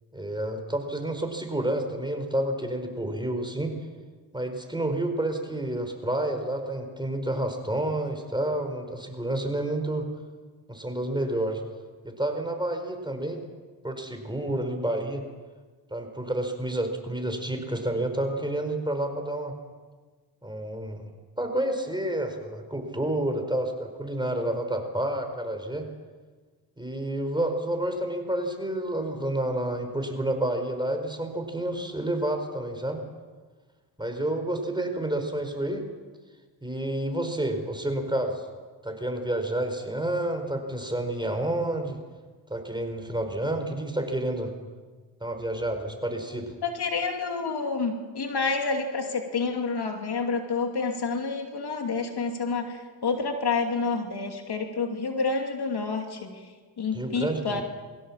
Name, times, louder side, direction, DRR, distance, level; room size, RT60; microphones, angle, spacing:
voice 1, 0.1-3.7 4.3-10.1 10.7-11.6 12.0-13.4 13.8-15.2 15.9-19.6 20.4-21.1 21.4-25.9 26.8-33.0 34.0-35.9 36.6-38.4 38.8-42.0 42.5-44.5 45.2-46.6 56.9-57.6, right 1 dB, 10° right, 5 dB, 4.6 m, -29 dB
voice 2, 46.6-56.4 56.8-57.6, left 4 dB, 55° left, 3 dB, 2.7 m, -29 dB
23.0 x 16.5 x 7.4 m, 1.4 s
cardioid pair, 65°, 46 cm